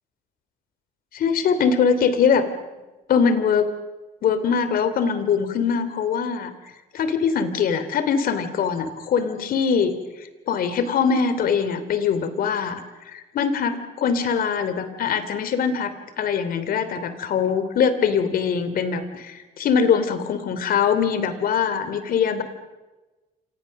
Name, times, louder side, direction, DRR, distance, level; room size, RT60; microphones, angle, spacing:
voice 1, 1.1-2.5 3.1-3.7 4.2-6.5 6.9-9.9 10.5-12.8 13.1-22.4, left 6 dB, 60° left, 11 dB, 2.9 m, -22 dB
27.5 x 27.5 x 6.5 m, 1.2 s
cardioid pair, 110°, 17 cm